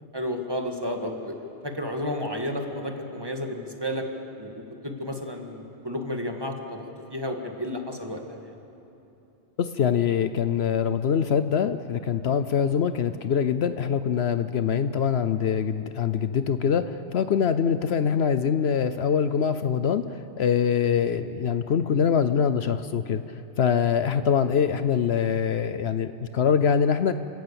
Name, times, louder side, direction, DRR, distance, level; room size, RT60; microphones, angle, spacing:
voice 1, 0.1-1.4 1.6-4.1 4.4-6.8 7.1-8.6, left 1 dB, 20° right, 3 dB, 1.9 m, -32 dB
voice 2, 9.6-23.2 23.6-27.1, left 7 dB, 65° left, 11 dB, 0.9 m, -24 dB
30.0 x 17.0 x 7.0 m, 2.9 s
omnidirectional pair, 1.2 m